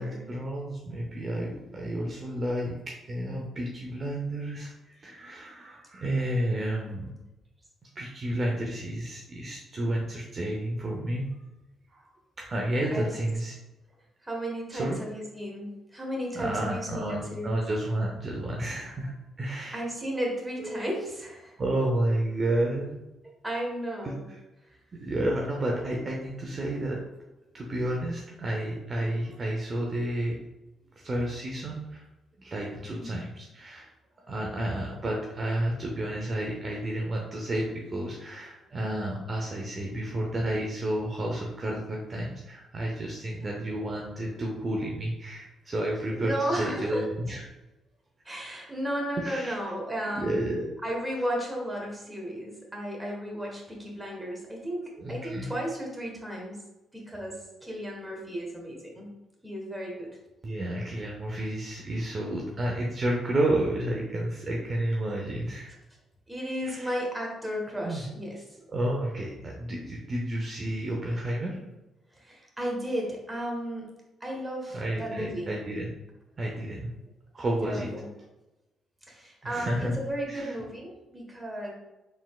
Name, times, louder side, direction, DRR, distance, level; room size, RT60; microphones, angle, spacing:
voice 1, 0.0-7.1 8.0-11.3 11.9-12.0 12.4-13.6 14.7-15.0 16.3-19.8 20.6-20.8 21.6-23.0 24.0-24.4 25.0-27.0 27.5-30.4 31.0-32.0 32.4-33.9 34.3-47.4 49.2-49.5 50.2-50.7 55.0-55.5 60.4-65.7 66.6-67.0 67.8-68.0 68.7-71.5 74.7-75.9 76.4-76.9 77.3-77.9 79.4-79.9 80.3-80.5, right 1 dB, 40° right, -1 dB, 0.7 m, -31 dB
voice 2, 14.2-17.6 19.7-21.5 23.4-24.2 33.0-33.1 43.4-43.5 46.2-47.0 48.2-50.5 50.8-56.6 56.9-59.1 59.4-60.2 66.3-68.4 72.1-73.9 74.2-75.5 77.6-78.1 79.1-81.7, equal, 10° right, -1 dB, 1.3 m, -34 dB
4.2 x 3.6 x 2.4 m, 1.0 s
cardioid pair, 90°, 0 cm